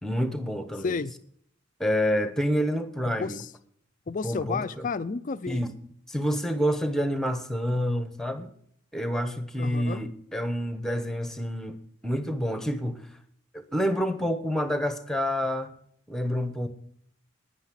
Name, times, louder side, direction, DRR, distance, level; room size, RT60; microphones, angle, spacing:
voice 1, 0.0-1.0 1.8-3.4 4.2-4.9 5.5-5.8 6.1-8.5 8.9-11.8 12.0-13.0 13.5-15.7 16.1-16.7, equal, ahead, 0.9 m, -28 dB
voice 2, 3.0-3.5 4.1-5.6 9.6-10.0, left 4 dB, 35° left, 0.4 m, -31 dB
9.9 x 9.7 x 7.4 m
head